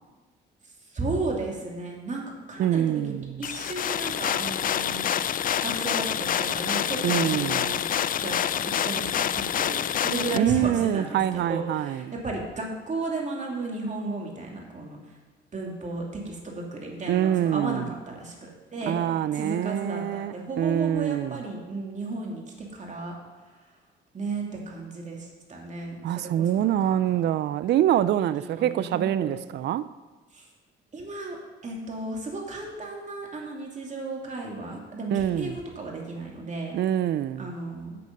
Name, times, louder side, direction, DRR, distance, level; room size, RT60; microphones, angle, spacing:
voice 1, 0.9-5.0 5.6-7.8 8.2-15.0 15.5-19.0 19.3-23.2 24.1-27.3 28.4-29.4 30.3-30.5 30.9-31.4 31.6-36.7 37.4-38.0, right 2 dB, 35° right, 2.5 m, -34 dB
voice 2, 2.6-3.4 7.0-7.7 10.3-12.0 17.1-17.9 18.8-21.4 26.0-29.9 35.1-35.6 36.7-37.5, right 11 dB, 60° right, 0.4 m, -25 dB
sound 1, 3.4-10.4, left 9 dB, 45° left, 0.4 m, -27 dB
8.5 x 8.4 x 5.3 m
cardioid pair, 90°, 20 cm